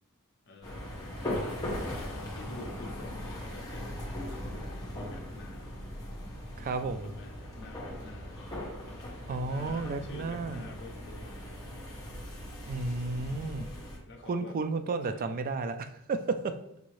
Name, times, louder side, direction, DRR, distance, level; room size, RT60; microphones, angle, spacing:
voice 1, 0.5-1.1 1.8-5.7 6.8-11.4 12.2-12.5 13.2-13.7 14.0-14.6 15.1-15.4, left 2 dB, 50° left, 3 dB, 0.6 m, -49 dB
sound 1, 0.6-14.0, left 1 dB, 15° left, 0.9 m, -39 dB
voice 2, 6.6-7.1 9.3-10.6 12.6-13.7 14.3-16.6, right 3 dB, 40° right, 9 dB, 0.3 m, -32 dB
5.0 x 2.7 x 3.1 m, 0.78 s
head